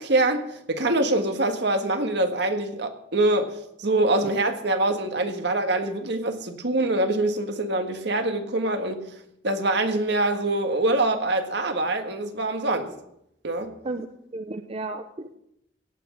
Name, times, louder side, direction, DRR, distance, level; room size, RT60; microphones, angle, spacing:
voice 1, 0.0-9.1 9.4-12.9 13.4-13.7, right 2 dB, 65° right, 6 dB, 1.7 m, -24 dB
voice 2, 13.8-15.3, right 2 dB, 30° right, 8 dB, 0.7 m, -34 dB
17.0 x 6.2 x 8.6 m, 0.78 s
head